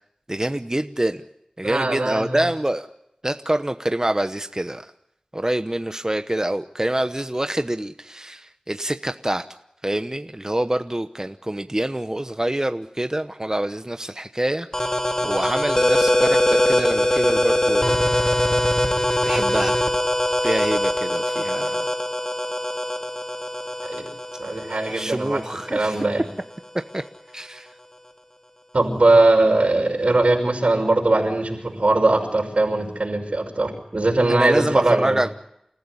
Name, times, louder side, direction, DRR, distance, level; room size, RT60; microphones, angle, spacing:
voice 1, 0.3-1.2 1.6-2.9 3.2-4.9 5.3-9.4 9.8-14.9 15.2-18.6 19.2-19.8 20.4-21.9 24.9-26.0 26.9-27.0 27.3-27.7 34.3-35.3, right 1 dB, 30° right, 9 dB, 1.0 m, -26 dB
voice 2, 1.6-2.5 23.8-24.0 24.4-25.4 25.7-26.2 28.7-35.2, right 2 dB, 85° right, 2 dB, 5.8 m, -20 dB
sound 1, 14.7-26.1, left 1 dB, 30° left, 2.5 m, -22 dB
28.5 x 15.0 x 9.9 m, 0.79 s
wide cardioid pair, 40°, 2 cm